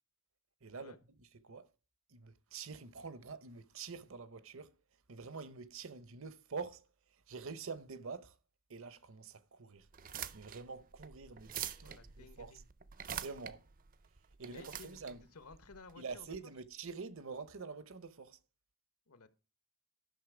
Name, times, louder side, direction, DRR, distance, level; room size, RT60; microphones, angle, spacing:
voice 1, 0.6-0.9 1.4-1.7 2.1-4.7 5.1-6.9 7.3-8.3 8.7-9.9 10.3-12.5 13.1-13.6 14.4-15.2 16.0-18.4, right 4 dB, 65° right, 0.8 m, -46 dB
sound 1, 9.9-16.4, right 9 dB, 40° right, 0.5 m, -46 dB
voice 2, 11.8-12.7 14.5-16.5 19.1-19.3, left 4 dB, 85° left, 1.2 m, -56 dB
11.5 x 6.5 x 4.9 m
head